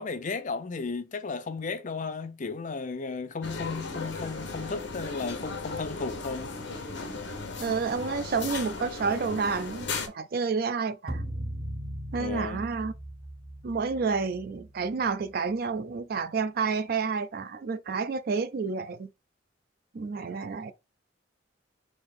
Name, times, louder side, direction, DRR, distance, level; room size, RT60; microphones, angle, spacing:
voice 1, 0.0-6.6 12.2-12.7, left 4 dB, 40° left, 0.5 m, -34 dB
sound 1, 3.4-10.1, left 3 dB, 60° left, 1.0 m, -36 dB
voice 2, 7.6-11.2 12.1-12.9 13.6-19.1 19.9-20.7, right 5 dB, 50° right, 0.4 m, -30 dB
sound 2, 11.1-15.5, right 1 dB, 30° right, 1.0 m, -38 dB
3.6 x 2.8 x 4.0 m
head